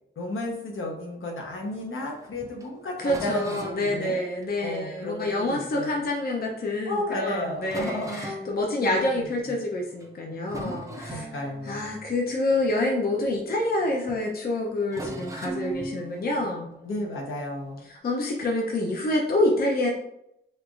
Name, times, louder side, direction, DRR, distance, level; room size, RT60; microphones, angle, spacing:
voice 1, 0.2-4.2 4.6-6.1 6.9-8.3 8.8-9.6 10.6-11.9 16.8-17.9, left 1 dB, 70° left, -1 dB, 0.9 m, -33 dB
sound 1, 1.3-6.3 6.9-7.0 7.3-7.4 7.6-9.6 9.9-10.2 10.4-13.8 14.1-14.3 14.9-17.9, right 1 dB, 15° right, 0.4 m, -41 dB
voice 2, 3.0-11.3 11.6-16.7 17.9-19.9, left 1 dB, 45° left, 0 dB, 0.5 m, -27 dB
4.4 x 2.4 x 2.4 m, 0.80 s
wide cardioid pair, 170°, 21 cm